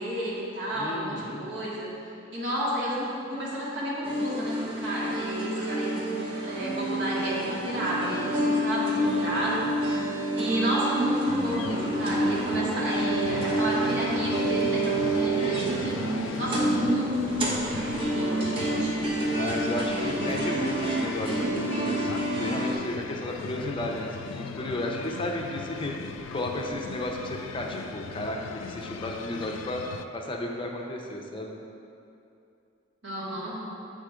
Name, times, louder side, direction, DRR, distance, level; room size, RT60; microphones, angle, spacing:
voice 1, 0.0-1.9 2.3-9.6 10.3-19.0 19.9-20.2 33.0-33.6, equal, 65° right, -8 dB, 1.6 m, -31 dB
voice 2, 0.7-1.5 9.0-9.7 19.3-29.8 30.1-31.5, left 1 dB, 25° left, 0 dB, 0.6 m, -34 dB
sound 1, 4.0-22.7, right 1 dB, 30° right, 1.1 m, -28 dB
sound 2, 11.2-30.0, left 6 dB, 85° left, 0.3 m, -39 dB
8.0 x 3.7 x 4.9 m, 2.7 s
head